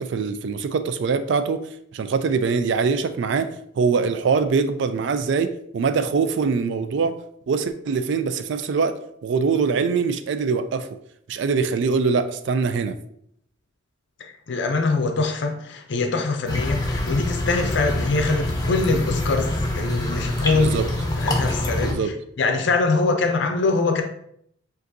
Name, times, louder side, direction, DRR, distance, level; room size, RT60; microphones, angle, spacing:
voice 1, 0.0-1.6 1.9-3.5 3.8-7.2 7.5-10.9 11.3-13.0 20.5-20.9 21.8-22.1, right 5 dB, 65° right, 10 dB, 0.3 m, -23 dB
voice 2, 14.2-20.8 21.2-22.0 22.4-24.0, left 3 dB, 65° left, 5 dB, 0.5 m, -23 dB
sound 1, 16.5-21.9, left 1 dB, 20° left, 0.8 m, -25 dB
7.6 x 2.6 x 2.6 m, 0.71 s
head